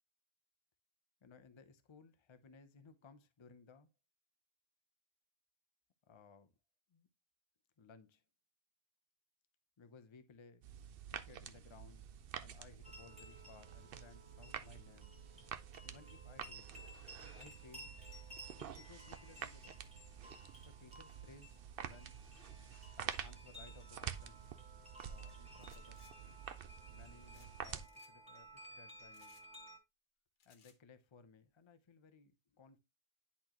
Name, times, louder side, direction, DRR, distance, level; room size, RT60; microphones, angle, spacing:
voice 1, 1.2-3.9 6.1-6.5 6.9-7.1 7.8-8.2 9.8-10.6 11.1-12.1 12.4-15.2 15.8-16.8 17.2-17.9 18.5-19.8 20.6-22.2 22.9-24.5 25.0-26.0 26.9-29.4 30.4-32.8, left 5 dB, 40° left, 0.4 m, -61 dB
sound 1, 10.6-27.9, right 9 dB, 65° right, 0.5 m, -49 dB
sound 2, 12.8-29.8, equal, 5° right, 1.4 m, -57 dB
sound 3, 25.6-26.1 27.3-27.5 27.8-28.1 29.1-29.5 30.4-30.8, left 7 dB, 80° left, 1.5 m, -67 dB
10.0 x 4.3 x 3.0 m
omnidirectional pair, 1.7 m